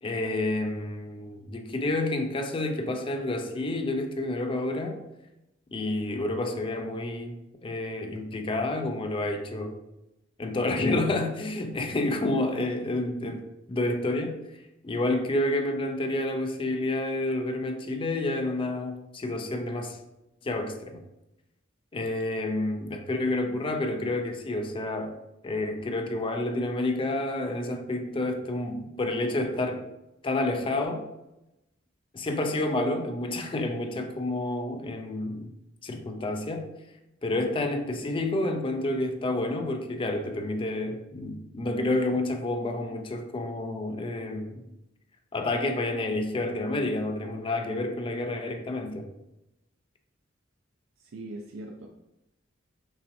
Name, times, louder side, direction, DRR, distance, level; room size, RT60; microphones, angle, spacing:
voice 1, 0.0-5.0 5.7-9.8 10.4-14.4 14.8-20.0 20.4-21.0 21.9-25.1 25.4-29.8 30.2-31.1 32.1-35.5 35.8-36.7 37.2-44.6 45.3-49.1, left 2 dB, 25° left, 5 dB, 0.4 m, -29 dB
voice 2, 51.0-51.9, right 2 dB, 85° right, 2 dB, 0.4 m, -40 dB
5.5 x 2.6 x 2.6 m, 0.92 s
head